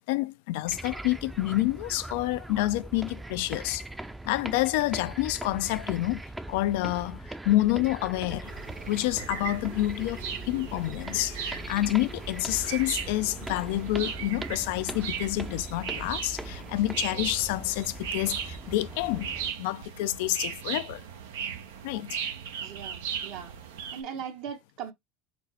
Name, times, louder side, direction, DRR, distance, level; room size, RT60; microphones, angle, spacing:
voice 1, 0.1-3.8 4.2-6.2 6.5-8.5 8.9-19.3 19.6-21.0 21.8-22.2, left 16 dB, 75° left, 0.3 m, -28 dB
sound 1, 0.7-19.5, right 1 dB, 10° right, 0.5 m, -40 dB
sound 2, 8.4-24.0, right 8 dB, 85° right, 0.7 m, -38 dB
voice 2, 22.6-23.5 23.9-24.9, right 8 dB, 65° right, 1.2 m, -39 dB
4.3 x 2.0 x 4.1 m
hypercardioid pair, 90°, 0 cm